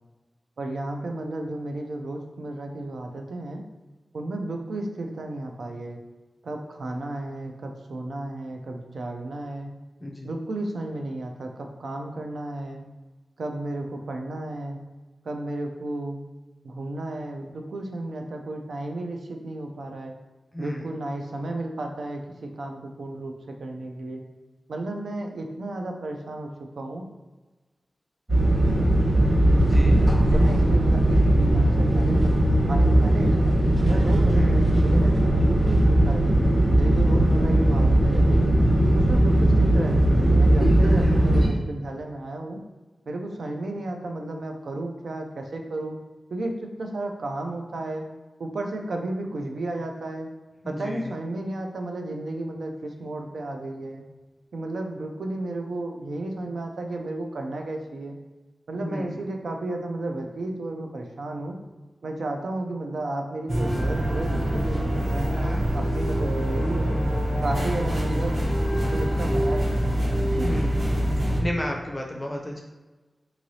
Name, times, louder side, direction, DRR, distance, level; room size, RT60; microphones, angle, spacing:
voice 1, 0.6-3.6 4.1-6.0 6.4-9.7 10.2-12.8 13.4-14.8 15.2-16.2 16.6-20.1 20.6-24.2 24.7-27.1 30.3-32.3 32.7-33.6 33.8-36.4 36.8-38.6 38.9-42.6 43.1-46.0 46.3-48.1 48.4-50.3 50.7-54.0 54.5-58.2 58.7-61.6 62.0-65.3 65.7-67.0 67.4-70.6, right 2 dB, 80° right, 3 dB, 0.4 m, -33 dB
voice 2, 10.0-10.4 20.5-20.8 29.6-30.0 34.3-34.6 50.6-51.2 58.7-59.1 70.4-70.9 71.4-72.6, left 1 dB, 15° left, 0 dB, 0.4 m, -33 dB
sound 1, 28.3-41.5, right 1 dB, 35° right, 1.3 m, -19 dB
sound 2, 63.5-71.4, equal, 55° right, 0.9 m, -25 dB
3.8 x 3.1 x 2.7 m, 1.2 s
wide cardioid pair, 125°, 0 cm